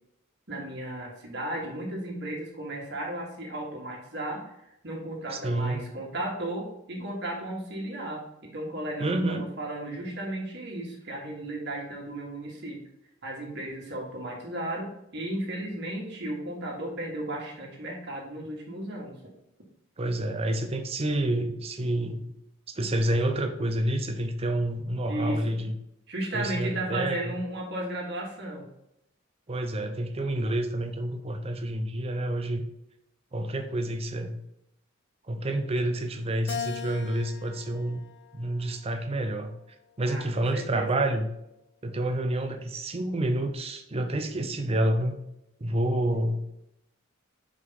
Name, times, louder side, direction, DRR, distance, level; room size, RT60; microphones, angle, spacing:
voice 1, 0.5-4.5 4.8-12.8 13.2-19.2 25.1-25.6 26.1-28.7 40.0-41.0, right 1 dB, 55° right, -1 dB, 1.9 m, -35 dB
voice 2, 5.3-5.8 9.0-9.5 20.0-22.3 22.7-25.8 26.3-27.3 29.5-32.6 33.3-34.3 35.3-38.0 38.3-39.5 40.0-41.3 41.8-45.1 45.6-46.4, right 1 dB, 30° right, 6 dB, 0.6 m, -28 dB
Keyboard (musical), 36.5-39.0 39.6-40.8, left 8 dB, 55° left, 0.4 m, -40 dB
5.2 x 4.9 x 3.8 m, 0.81 s
head